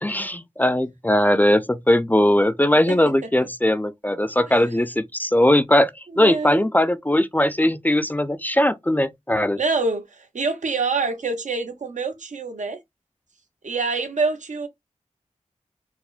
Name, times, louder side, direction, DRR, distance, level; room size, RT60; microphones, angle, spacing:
voice 1, 0.0-9.6, left 1 dB, 15° left, 0.3 m, -20 dB
voice 2, 6.1-6.7 9.6-12.8 13.6-14.7, right 4 dB, 80° right, 0.8 m, -26 dB
4.2 x 2.1 x 2.4 m
wide cardioid pair, 55°, 12 cm